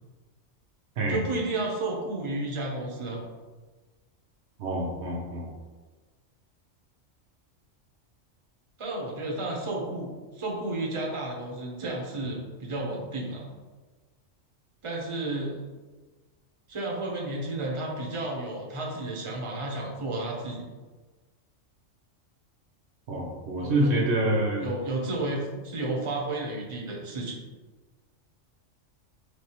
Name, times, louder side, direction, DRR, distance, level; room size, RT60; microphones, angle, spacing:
voice 1, 1.1-3.2 8.8-13.5 14.8-15.6 16.7-20.7 23.6-24.0 24.6-27.4, right 2 dB, 30° right, -2 dB, 0.7 m, -32 dB
voice 2, 4.6-5.5 23.1-24.6, right 1 dB, 60° right, -1 dB, 1.0 m, -26 dB
4.3 x 3.3 x 2.9 m, 1.3 s
omnidirectional pair, 1.4 m